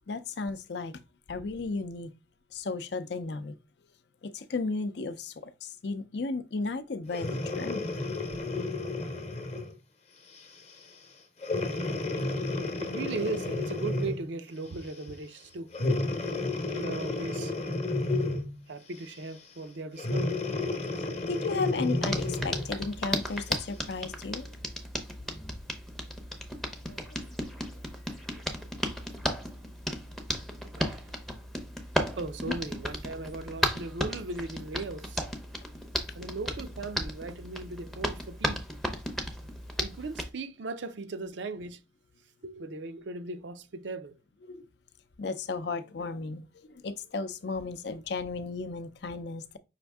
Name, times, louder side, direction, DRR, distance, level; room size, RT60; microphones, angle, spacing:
voice 1, 0.1-1.0 1.3-2.1 2.5-3.6 4.2-7.9 21.3-24.5 26.9-27.2 44.5-44.6 45.2-49.6, left 3 dB, 65° left, 0.5 m, -34 dB
Breathing, 7.1-9.7 10.4-10.6 11.4-14.3 15.7-18.6 20.0-22.7 23.3-23.4, left 2 dB, 35° left, 0.8 m, -31 dB
voice 2, 12.8-15.7 16.7-17.5 18.7-20.4 30.8-31.0 32.2-35.3 36.1-38.7 39.8-41.8 42.4-44.2, right 3 dB, 75° right, 0.5 m, -38 dB
Hands, 22.0-40.3, equal, ahead, 0.6 m, -35 dB
5.7 x 2.6 x 3.5 m
head